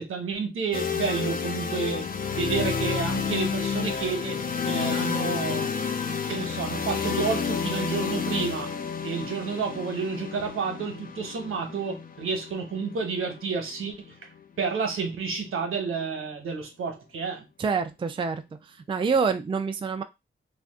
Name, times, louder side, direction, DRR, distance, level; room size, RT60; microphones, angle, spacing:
voice 1, 0.0-5.8 6.3-8.7 9.0-14.1 14.6-17.5, right 5 dB, 85° right, 1.0 m, -30 dB
sound 1, 0.7-14.6, left 6 dB, 45° left, 0.5 m, -30 dB
voice 2, 17.6-20.0, right 5 dB, 25° right, 0.4 m, -27 dB
2.5 x 2.4 x 3.5 m
wide cardioid pair, 95°, 21 cm